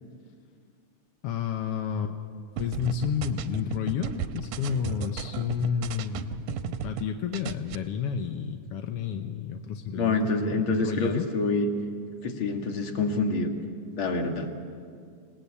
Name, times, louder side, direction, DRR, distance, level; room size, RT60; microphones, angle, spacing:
voice 1, 1.2-2.1 2.6-11.3, left 7 dB, 70° left, 6 dB, 1.4 m, -31 dB
sound 1, 2.6-7.1 7.3-7.8, right 8 dB, 75° right, 2.2 m, -35 dB
voice 2, 9.9-11.7 12.2-13.5 14.0-14.5, left 3 dB, 45° left, 4 dB, 2.2 m, -26 dB
27.0 x 18.5 x 8.5 m, 2.2 s
omnidirectional pair, 3.8 m